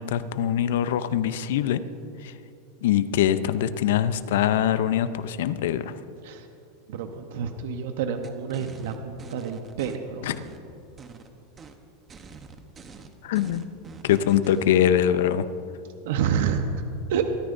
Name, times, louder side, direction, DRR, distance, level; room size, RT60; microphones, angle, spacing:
voice 1, 0.0-1.8 2.8-5.9 10.2-10.4 13.2-13.6 14.0-15.5, left 10 dB, 75° left, 13 dB, 0.6 m, -23 dB
voice 2, 6.9-10.3 16.0-16.8 17.1-17.2, right 7 dB, 70° right, 6 dB, 0.9 m, -28 dB
sound 1, 8.2-10.0 10.3-11.3 11.6-11.8 12.1-14.7, right 5 dB, 20° right, 0.9 m, -45 dB
23.5 x 13.5 x 2.6 m, 2.7 s
supercardioid pair, 150°, 0 cm